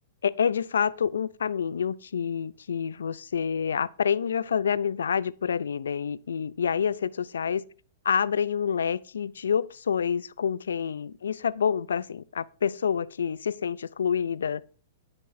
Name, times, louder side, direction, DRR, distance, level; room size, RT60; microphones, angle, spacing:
voice 1, 0.2-7.6 8.1-14.6, left 7 dB, 85° left, 0.3 m, -27 dB
17.5 x 5.9 x 2.6 m
hypercardioid pair, 125°, 0 cm